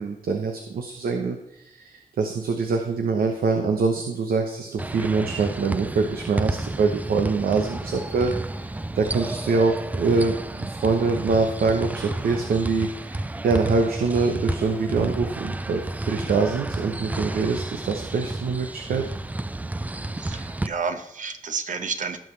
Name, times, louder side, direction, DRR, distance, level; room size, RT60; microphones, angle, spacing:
voice 1, 0.0-8.7 8.9-19.0, right 4 dB, 90° right, 4 dB, 1.0 m, -24 dB
sound 1, 4.8-20.7, right 2 dB, 10° right, 0.3 m, -31 dB
voice 2, 20.2-22.2, right 5 dB, 60° right, 7 dB, 1.1 m, -30 dB
16.5 x 6.4 x 3.3 m, 0.86 s
wide cardioid pair, 120°, 15 cm